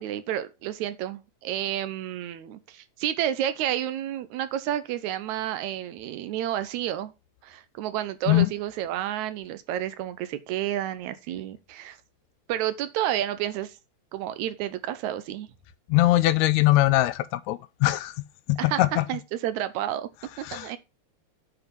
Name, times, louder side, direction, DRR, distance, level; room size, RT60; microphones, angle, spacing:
voice 1, 0.0-7.1 7.4-12.0 12.5-13.8 14.1-15.5 18.7-20.1 20.5-20.8, right 12 dB, 85° right, 2.0 m, -30 dB
voice 2, 15.9-18.1 18.5-19.1 20.4-20.8, left 16 dB, 80° left, 1.9 m, -22 dB
9.0 x 4.7 x 5.2 m
omnidirectional pair, 3.3 m